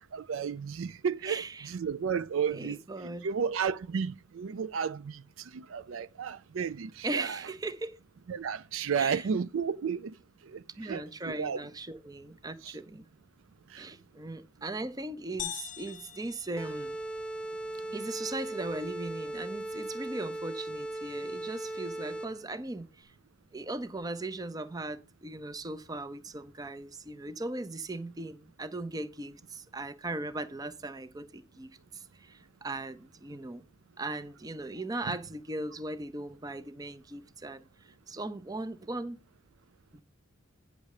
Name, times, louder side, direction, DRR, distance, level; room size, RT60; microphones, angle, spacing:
voice 1, 0.1-2.8 3.2-5.2 5.5-7.4 8.3-10.1 10.5-10.6 10.9-11.6 12.6-12.7, right 6 dB, 70° right, 0.4 m, -32 dB
voice 2, 1.2-1.7 2.5-3.3 7.0-8.0 9.0-9.3 10.8-13.1 13.7-17.0 17.9-23.1 23.5-33.6 34.0-37.6 38.1-39.2 39.9-40.0, right 2 dB, 15° right, 0.5 m, -38 dB
sound 1, 15.4-17.4, left 11 dB, 35° left, 0.5 m, -42 dB
sound 2, 16.6-22.5, right 1 dB, 5° left, 1.0 m, -38 dB
9.5 x 6.4 x 4.8 m
head